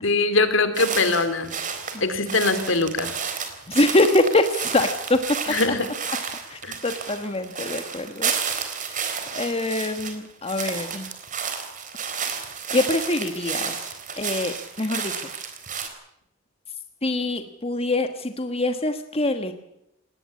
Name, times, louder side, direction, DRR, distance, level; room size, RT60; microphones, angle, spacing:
voice 1, 0.0-1.5 2.0-3.2 5.5-5.9 6.6-6.8, left 3 dB, 70° left, 11 dB, 3.0 m, -22 dB
sound 1, 0.7-10.2 10.4-15.9, right 6 dB, 40° right, 3.8 m, -31 dB
voice 2, 3.7-5.2 6.5-8.3 8.8-9.0 9.3-11.1 12.7-13.9 14.2-15.3 17.0-19.5, left 2 dB, 30° left, 8 dB, 1.4 m, -24 dB
19.0 x 19.0 x 8.5 m, 0.81 s
head